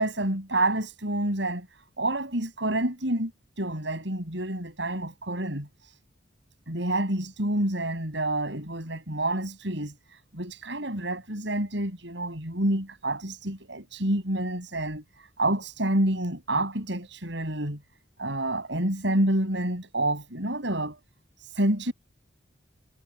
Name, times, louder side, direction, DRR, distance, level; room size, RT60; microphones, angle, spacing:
voice 1, 0.0-1.7 2.0-3.3 3.6-6.0 6.7-17.8 18.2-21.0 21.4-21.9, right 1 dB, 70° right, 6.1 m, -28 dB
head